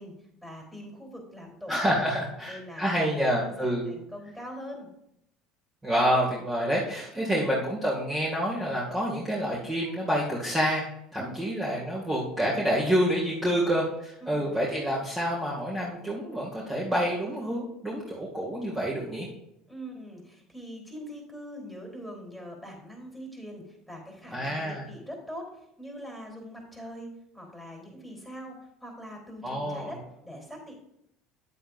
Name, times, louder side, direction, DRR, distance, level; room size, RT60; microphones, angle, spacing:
voice 1, 0.0-2.1 2.4-4.9 7.1-7.5 11.2-11.5 13.4-13.9 14.2-14.5 19.7-30.7, equal, ahead, 0 dB, 3.5 m, -43 dB
voice 2, 1.7-3.9 5.8-19.3 24.3-24.8 29.4-30.0, equal, 20° right, -5 dB, 2.2 m, -28 dB
9.5 x 7.9 x 2.6 m, 0.79 s
hypercardioid pair, 85°, 0 cm